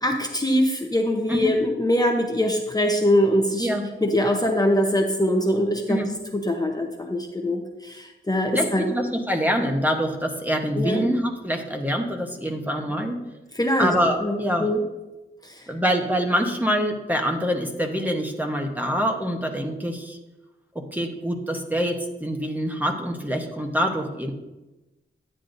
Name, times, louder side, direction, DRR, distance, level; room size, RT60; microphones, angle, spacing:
voice 1, 0.0-3.7 4.0-6.0 6.3-8.9 10.8-11.0 13.6-13.9 14.2-14.8, left 1 dB, 20° left, 2 dB, 0.8 m, -23 dB
voice 2, 8.5-13.2 13.8-14.7 15.7-20.2 20.7-24.3, equal, 10° right, 2 dB, 0.9 m, -25 dB
9.9 x 9.2 x 2.6 m, 1.0 s
wide cardioid pair, 125°, 20 cm